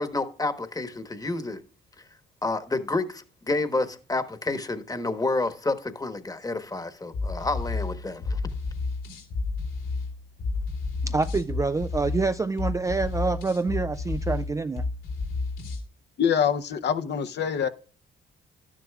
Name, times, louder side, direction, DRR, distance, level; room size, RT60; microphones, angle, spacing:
voice 1, 0.0-1.6 2.4-8.4, left 2 dB, 20° left, 1.2 m, -29 dB
sound 1, 7.1-15.9, left 3 dB, 85° left, 3.5 m, -31 dB
voice 2, 11.0-14.8, right 3 dB, 15° right, 0.3 m, -27 dB
voice 3, 16.2-17.7, left 8 dB, 60° left, 0.8 m, -25 dB
12.0 x 10.0 x 2.4 m
cardioid pair, 90°, 20 cm